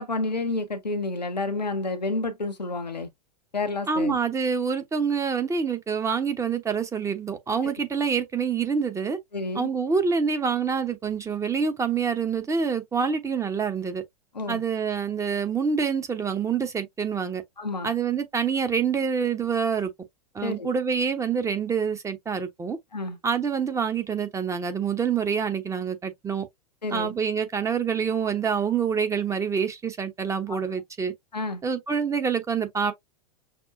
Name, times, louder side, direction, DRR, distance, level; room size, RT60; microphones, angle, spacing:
voice 1, 0.0-3.1 3.5-4.2 9.3-9.7 14.3-14.6 17.6-17.9 20.4-20.7 22.9-23.2 26.8-27.1 30.5-30.6 31.3-31.6, left 2 dB, 90° left, 1.0 m, -30 dB
voice 2, 3.9-9.2 9.5-14.0 14.5-17.4 17.8-19.9 20.3-22.8 23.2-26.5 26.9-31.1 31.6-32.9, right 6 dB, 15° right, 1.0 m, -26 dB
6.1 x 2.1 x 2.6 m
figure-of-eight pair, 95°, 21 cm